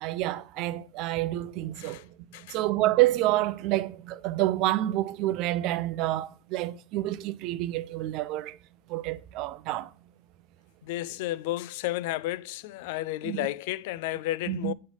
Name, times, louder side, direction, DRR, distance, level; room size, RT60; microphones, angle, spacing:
voice 1, 0.0-2.1 2.5-8.6 8.9-9.9 13.2-13.5 14.5-14.7, right 16 dB, 60° right, 0.6 m, -28 dB
voice 2, 10.8-14.7, left 16 dB, 75° left, 0.4 m, -32 dB
8.7 x 3.2 x 5.5 m
supercardioid pair, 110°, 0 cm